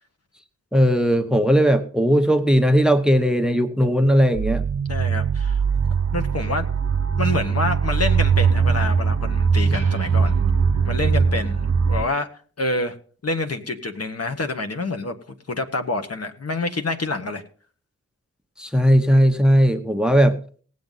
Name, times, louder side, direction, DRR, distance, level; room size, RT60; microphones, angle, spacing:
voice 1, 0.7-4.6 18.6-20.4, equal, ahead, 9 dB, 1.0 m, -17 dB
sound 1, 4.3-12.1, right 6 dB, 65° right, 1.3 m, -21 dB
voice 2, 4.9-5.6 6.1-6.7 7.2-10.4 10.8-12.3 12.6-12.9 13.2-15.2 15.5-17.4, left 2 dB, 50° left, 6 dB, 1.6 m, -27 dB
19.0 x 7.6 x 4.0 m, 0.44 s
wide cardioid pair, 75°, 31 cm